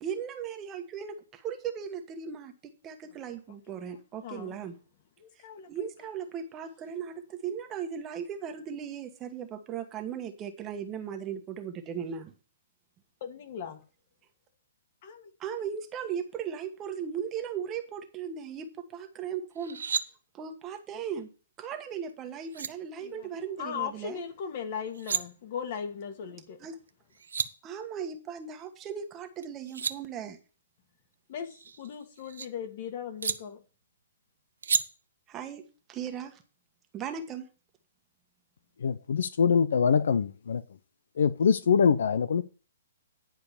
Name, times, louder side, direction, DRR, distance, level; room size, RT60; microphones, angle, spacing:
voice 1, 0.0-2.5 2.8-4.7 5.7-12.3 15.4-19.8 20.3-21.3 21.6-24.2 26.6-26.8 27.6-30.4 35.3-36.4 36.9-37.4, right 7 dB, 20° right, 1.3 m, -37 dB
voice 2, 4.2-4.5 5.2-5.9 13.2-13.8 15.0-15.3 23.0-23.3 23.6-26.6 31.3-33.6, left 7 dB, 45° left, 2.1 m, -38 dB
sound 1, 19.6-20.0 22.1-22.2 22.5-22.7 24.8-25.2 26.9-27.0 27.1-27.5 29.4-30.0 31.4-32.5 33.2-33.4 34.6-34.8, right 6 dB, 90° right, 0.8 m, -31 dB
voice 3, 38.8-40.6 41.2-42.4, left 6 dB, 75° left, 0.7 m, -24 dB
10.5 x 4.9 x 7.2 m
hypercardioid pair, 155°, 0 cm